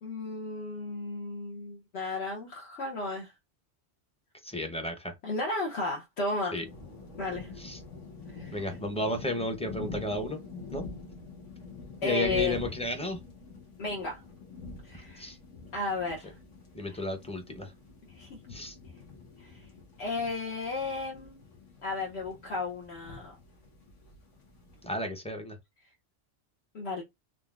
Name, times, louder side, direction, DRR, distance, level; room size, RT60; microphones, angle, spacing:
voice 1, 0.0-3.3 5.2-6.6 7.2-7.5 8.3-8.5 12.0-12.6 13.8-14.2 14.8-15.3 15.7-16.3 18.2-18.4 19.4-19.5 20.0-21.4 21.8-23.3 26.7-27.0, left 3 dB, 65° left, 1.0 m, -34 dB
voice 2, 4.4-5.1 6.5-6.7 7.6-7.8 8.5-10.4 10.7-10.9 12.0-13.2 14.9-15.4 16.7-17.7 18.5-18.8 24.8-25.6, left 1 dB, 5° left, 0.6 m, -33 dB
sound 1, 6.6-24.9, left 3 dB, 90° left, 1.5 m, -46 dB
3.9 x 3.3 x 2.4 m
omnidirectional pair, 1.2 m